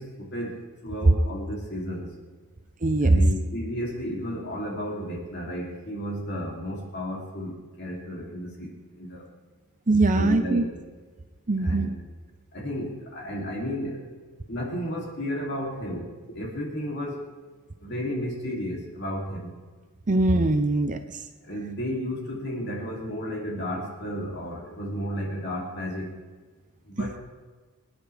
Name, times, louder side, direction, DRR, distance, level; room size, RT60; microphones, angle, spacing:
voice 1, 0.0-2.1 3.0-9.3 10.1-10.7 11.6-12.0 12.5-14.1 14.5-17.3 17.8-19.5 21.4-26.1 26.8-27.2, equal, 55° left, -2 dB, 3.1 m, -33 dB
voice 2, 2.8-3.2 9.9-10.6 11.5-11.9 20.1-21.2 27.0-27.1, right 2 dB, 35° right, 7 dB, 0.7 m, -22 dB
25.0 x 10.0 x 3.5 m, 1.4 s
head